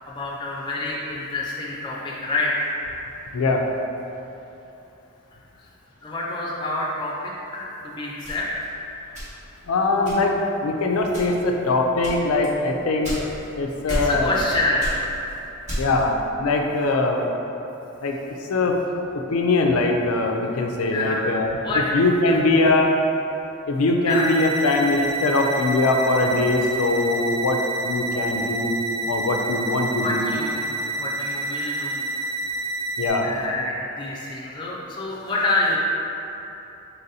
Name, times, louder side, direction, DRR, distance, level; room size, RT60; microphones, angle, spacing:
voice 1, 0.1-2.8 6.0-8.7 13.9-15.3 16.9-17.0 20.9-21.3 21.6-21.9 22.2-22.4 24.0-24.3 29.9-30.7 30.9-32.1 33.2-35.8, left 2 dB, 20° left, -5 dB, 0.5 m, -27 dB
sound 1, 8.2-9.6 10.0-10.5 11.1-11.5 12.0-13.5 13.9-14.5 14.8-16.1, equal, 35° right, 1.1 m, -31 dB
voice 2, 9.7-13.1 13.6-14.3 15.8-17.3 18.0-18.2 18.5-18.8 19.3-21.5 21.9-23.0 23.7-28.8 29.1-30.3 33.0-33.3, left 2 dB, 90° left, 2 dB, 0.4 m, -21 dB
sound 2, 24.1-33.1, right 2 dB, 55° right, 0.6 m, -29 dB
4.0 x 4.0 x 2.7 m, 3.0 s
head